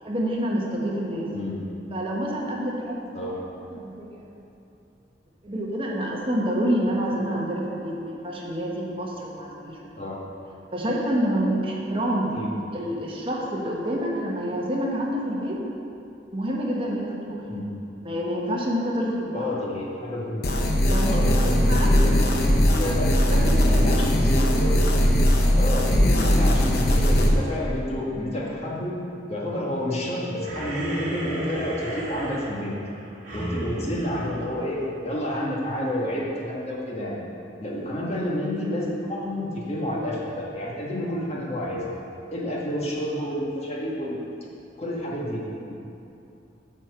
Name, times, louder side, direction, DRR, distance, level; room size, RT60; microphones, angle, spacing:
voice 1, 0.0-1.3 1.9-3.0 3.3-3.4 3.7-4.3 5.4-10.0 10.7-12.4 12.7-15.6 16.3-17.4 18.0-19.5 20.8-21.3 21.7-21.9 23.3-23.9 33.5-33.6, equal, 30° right, -3 dB, 1.2 m, -28 dB
voice 2, 19.3-20.6 21.1-23.2 23.7-25.2 25.5-28.9 29.3-32.8 33.3-37.2 37.6-41.9 42.3-44.2 44.8-45.7, left 1 dB, 35° left, -4 dB, 1.4 m, -30 dB
sound 1, 20.4-27.3, equal, 60° left, 0.9 m, -19 dB
sound 2, 30.4-35.1, equal, 45° right, 2.0 m, -34 dB
8.8 x 4.5 x 6.7 m, 2.7 s
head